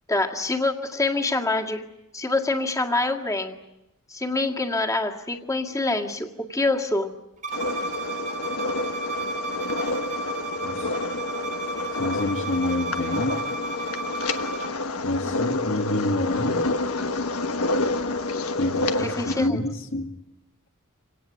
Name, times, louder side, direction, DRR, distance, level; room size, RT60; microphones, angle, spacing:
voice 1, 0.1-1.8 2.1-3.6 4.1-7.1 19.0-19.6, left 2 dB, 15° left, 2 dB, 1.9 m, -25 dB
Bowed string instrument, 7.4-14.7, right 3 dB, 35° right, 1.8 m, -33 dB
sound 1, 7.5-19.5, left 2 dB, 85° left, 1.3 m, -28 dB
voice 2, 12.0-13.4 15.0-16.7 18.6-20.1, left 1 dB, 65° left, 4 dB, 2.1 m, -27 dB
26.5 x 18.5 x 10.0 m, 0.94 s
head